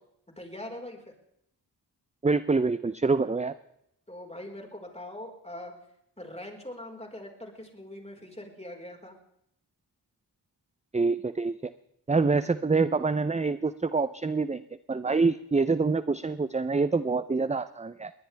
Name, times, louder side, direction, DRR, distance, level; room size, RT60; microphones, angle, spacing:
voice 1, 0.4-1.1 4.1-5.7 6.2-9.1, left 1 dB, 15° left, 2 dB, 4.7 m, -42 dB
voice 2, 2.2-3.5 10.9-11.7 12.1-14.6 14.9-18.1, right 4 dB, 15° right, 13 dB, 0.6 m, -26 dB
21.5 x 19.0 x 3.5 m, 0.77 s
wide cardioid pair, 70°, 41 cm